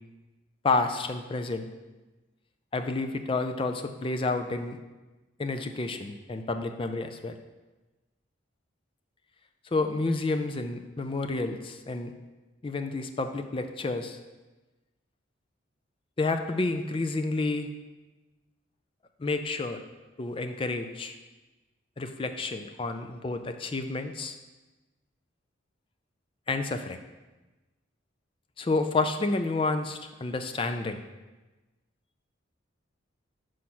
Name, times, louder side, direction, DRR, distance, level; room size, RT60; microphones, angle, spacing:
voice 1, 0.6-1.7 2.7-4.8 5.4-7.3 9.7-12.1 12.6-14.2 16.2-17.7 19.2-19.8 20.2-21.2 22.0-24.4 26.5-27.0 28.6-31.0, left 3 dB, 25° left, 7 dB, 0.4 m, -30 dB
5.6 x 4.9 x 6.0 m, 1.2 s
head